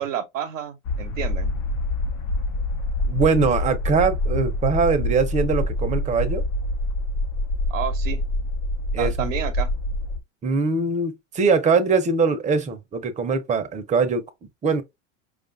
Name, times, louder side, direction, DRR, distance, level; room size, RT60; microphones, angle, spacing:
voice 1, 0.0-1.5 7.7-8.2 9.0-9.7, right 9 dB, 80° right, 0.7 m, -30 dB
sound 1, 0.8-10.2, left 1 dB, 55° left, 0.8 m, -26 dB
voice 2, 3.0-6.4 8.9-9.3 10.4-14.2 14.6-14.8, right 4 dB, 20° right, 0.6 m, -22 dB
4.8 x 2.4 x 2.5 m
hypercardioid pair, 95°, 38 cm